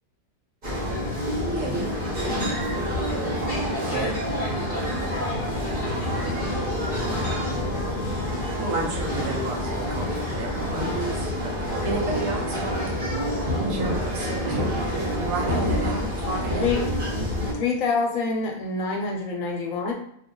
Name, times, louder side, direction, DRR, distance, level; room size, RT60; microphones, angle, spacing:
sound 1, 0.6-17.5, equal, 40° right, 1.0 m, -27 dB
voice 1, 3.1-7.2, left 1 dB, 20° right, -6 dB, 0.4 m, -37 dB
voice 2, 8.6-13.0 13.7-16.7, right 3 dB, 70° right, 2 dB, 0.9 m, -32 dB
voice 3, 16.5-16.8 17.1-17.3 17.5-19.9, left 4 dB, 70° left, 1 dB, 0.9 m, -26 dB
2.6 x 2.4 x 3.7 m, 0.69 s
omnidirectional pair, 1.6 m